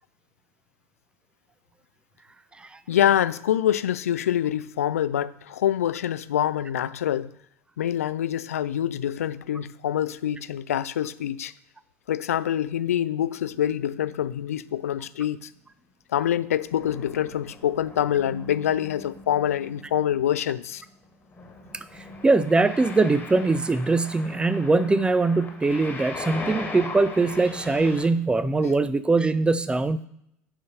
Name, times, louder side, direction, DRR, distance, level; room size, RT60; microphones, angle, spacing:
voice 1, 2.9-7.3 7.8-11.5 12.1-15.5 16.1-20.8, left 10 dB, 75° left, 0.3 m, -25 dB
sound 1, 13.2-15.1 16.7-28.1, left 3 dB, 20° left, 1.7 m, -40 dB
voice 2, 22.2-30.1, right 3 dB, 10° right, 0.5 m, -22 dB
7.9 x 3.8 x 5.6 m
figure-of-eight pair, 70°, 8 cm